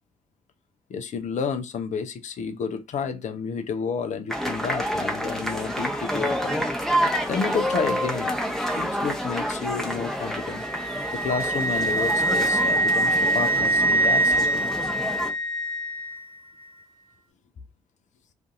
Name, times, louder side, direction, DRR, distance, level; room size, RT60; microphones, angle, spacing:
voice 1, 0.9-6.7 7.3-8.4 8.8-14.7, left 6 dB, 45° left, 0.5 m, -31 dB
sound 1, 4.3-15.3, equal, ahead, 0.8 m, -28 dB
Wind instrument woodwind instrument, 10.3-16.3, right 2 dB, 60° right, 0.9 m, -24 dB
2.6 x 2.5 x 2.4 m
hypercardioid pair, 40°, 17 cm